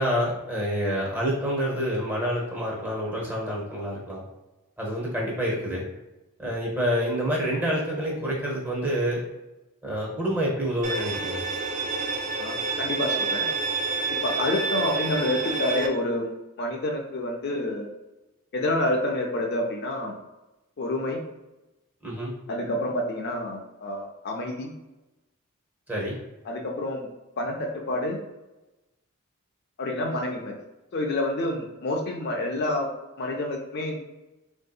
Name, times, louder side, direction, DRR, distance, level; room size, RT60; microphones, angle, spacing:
voice 1, 0.0-4.2 4.8-5.8 6.4-9.2 9.8-11.4 22.0-22.3 25.9-26.2, equal, 10° right, -4 dB, 0.7 m, -27 dB
Bowed string instrument, 10.8-15.9, right 4 dB, 35° right, 0.3 m, -28 dB
voice 2, 12.4-13.5 14.2-16.3 16.6-17.9 18.5-20.1 20.8-21.2 22.5-24.7 26.5-27.1 27.4-28.2 29.8-30.5 30.9-32.9 33.2-34.0, left 1 dB, 45° left, 0 dB, 0.4 m, -28 dB
3.5 x 2.6 x 2.3 m, 1.0 s
head